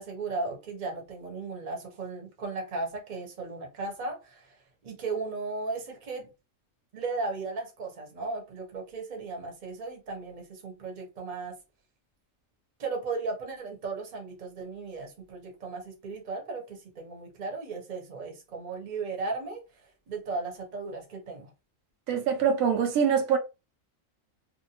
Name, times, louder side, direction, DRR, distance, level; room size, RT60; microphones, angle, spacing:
voice 1, 0.0-4.6 4.8-6.3 6.9-11.5 12.8-19.6 20.1-21.5, right 3 dB, 40° right, 0.9 m, -36 dB
voice 2, 22.1-23.4, right 7 dB, 85° right, 1.0 m, -24 dB
2.6 x 2.2 x 2.7 m
omnidirectional pair, 1.4 m